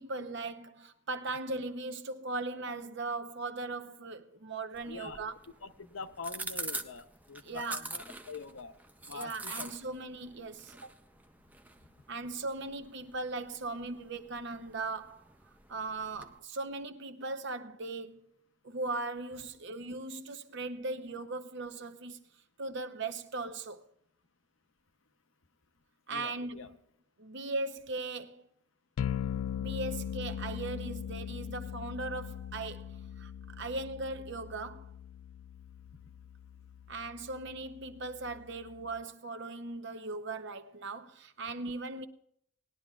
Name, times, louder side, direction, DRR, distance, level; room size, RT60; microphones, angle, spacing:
voice 1, 0.0-5.4 7.4-7.9 9.1-10.9 12.1-15.2 15.7-18.4 18.6-22.2 22.6-23.8 26.1-26.8 27.2-28.5 29.6-34.9 36.9-42.1, right 3 dB, 55° right, 0.8 m, -38 dB
sound 1, 4.7-16.4, right 2 dB, 10° right, 0.5 m, -46 dB
voice 2, 4.9-5.2 5.6-8.7 9.1-9.7 26.1-26.7, left 4 dB, 65° left, 0.7 m, -44 dB
sound 2, 29.0-39.0, left 9 dB, 90° left, 0.4 m, -40 dB
19.5 x 11.5 x 2.4 m
head